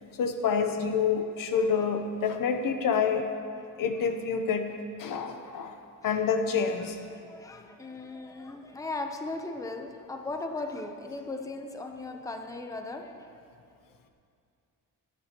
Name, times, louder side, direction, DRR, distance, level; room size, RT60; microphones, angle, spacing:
voice 1, 0.2-3.3 3.8-4.7 5.0-5.8 6.0-7.0, left 6 dB, 75° left, 6 dB, 0.9 m, -27 dB
voice 2, 6.8-13.3, left 2 dB, 10° left, 4 dB, 0.7 m, -38 dB
20.5 x 8.9 x 3.0 m, 2.4 s
cardioid pair, 135°, 33 cm